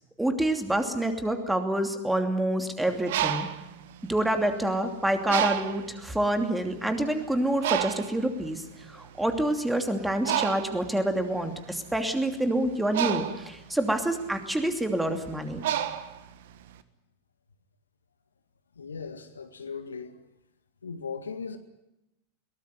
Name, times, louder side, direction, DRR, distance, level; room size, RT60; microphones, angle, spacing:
voice 1, 0.2-3.5 4.0-8.6 8.9-15.6, right 1 dB, 5° right, 2.8 m, -27 dB
Bird, 2.9-4.7 5.3-6.0 6.6-6.8 7.0-16.8, right 11 dB, 55° right, 1.4 m, -31 dB
voice 2, 18.8-20.2 20.8-21.6, left 5 dB, 70° left, 2.0 m, -38 dB
22.5 x 19.0 x 9.5 m
figure-of-eight pair, 90°, 0 cm